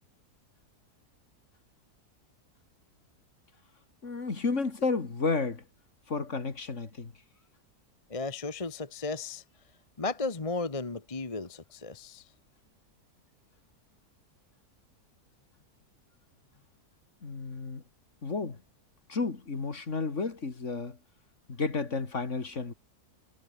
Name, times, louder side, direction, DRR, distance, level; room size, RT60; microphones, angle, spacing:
voice 1, 4.0-5.6 6.1-7.1 17.2-17.8 18.2-18.6 19.1-21.0 21.5-22.7, left 4 dB, 50° left, 2.6 m, -32 dB
voice 2, 8.1-9.4 10.0-12.3, left 3 dB, 25° left, 1.3 m, -34 dB
omnidirectional pair, 1.7 m